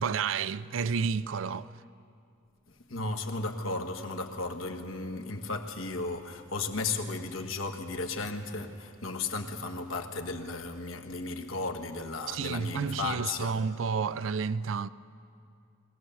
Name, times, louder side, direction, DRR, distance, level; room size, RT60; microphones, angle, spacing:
voice 1, 0.0-1.7 12.3-14.9, right 6 dB, 70° right, 0.4 m, -30 dB
voice 2, 2.9-13.5, left 3 dB, 90° left, 1.4 m, -35 dB
22.0 x 16.5 x 7.1 m
head